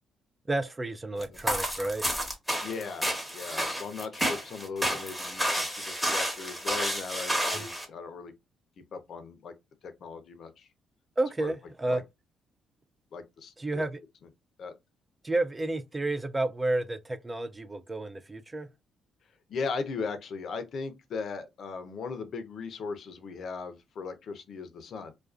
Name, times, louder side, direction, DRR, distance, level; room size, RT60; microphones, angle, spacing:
voice 1, 0.5-2.1 7.5-7.7 11.2-12.0 13.6-14.0 15.2-18.7, right 2 dB, 20° right, 0.3 m, -31 dB
sound 1, 1.2-7.9, equal, 5° right, 0.9 m, -30 dB
voice 2, 2.6-8.3 8.9-9.5 9.8-10.7 11.4-11.5 11.9-12.0 13.1-13.8 14.6-14.7 19.5-25.1, left 5 dB, 60° left, 0.5 m, -38 dB
2.4 x 2.3 x 2.4 m
cardioid pair, 90°, 0 cm